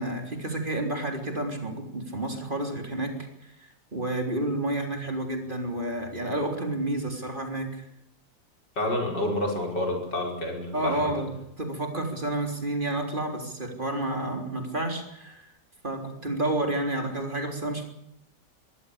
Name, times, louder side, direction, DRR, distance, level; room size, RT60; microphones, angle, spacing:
voice 1, 0.0-3.1 3.4-3.5 3.9-7.9 10.7-11.3 11.6-15.5 15.8-17.8, right 1 dB, 30° right, 4 dB, 3.8 m, -30 dB
voice 2, 8.8-11.2, left 1 dB, 90° left, 1 dB, 6.2 m, -29 dB
23.0 x 15.5 x 8.5 m, 0.76 s
omnidirectional pair, 1.8 m